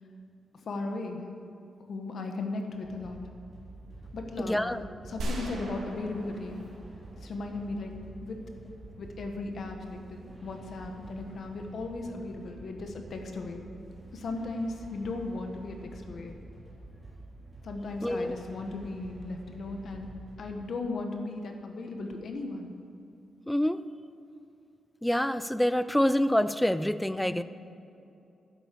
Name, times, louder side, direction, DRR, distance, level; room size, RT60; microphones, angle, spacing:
voice 1, 0.5-1.2 1.8-3.2 4.1-6.6 7.2-8.4 9.0-13.7 14.1-16.3 17.6-22.7 27.2-27.4, left 2 dB, 50° left, 4 dB, 1.3 m, -37 dB
sound 1, 2.8-20.5, right 2 dB, 20° right, 2.2 m, -49 dB
voice 2, 4.4-4.8 18.0-18.4 23.5-23.8 25.0-27.4, left 1 dB, 5° left, 14 dB, 0.3 m, -26 dB
sound 2, 5.2-8.1, right 1 dB, 75° right, 2.1 m, -39 dB
10.5 x 8.1 x 6.8 m, 2.6 s
wide cardioid pair, 165°, 0 cm